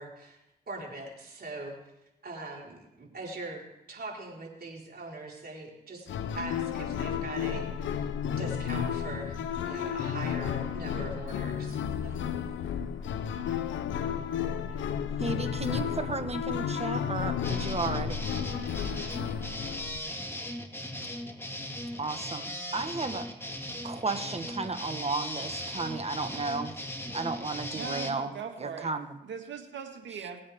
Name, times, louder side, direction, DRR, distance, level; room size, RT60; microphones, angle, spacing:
voice 1, 0.0-1.8 2.2-6.1 6.3-12.3, right 2 dB, 55° right, -3 dB, 4.5 m, -42 dB
sound 1, 6.1-20.0, left 8 dB, 80° left, 0.7 m, -32 dB
voice 2, 15.2-18.2 22.0-23.3 23.8-26.7 27.1-28.3 28.6-29.1, right 3 dB, 35° right, 8 dB, 1.4 m, -33 dB
sound 2, 17.4-28.1, left 1 dB, 10° left, 2.0 m, -38 dB
voice 3, 27.7-28.9 29.2-30.4, right 6 dB, 80° right, 4 dB, 1.8 m, -40 dB
20.0 x 8.6 x 3.6 m, 0.89 s
supercardioid pair, 45°, 19 cm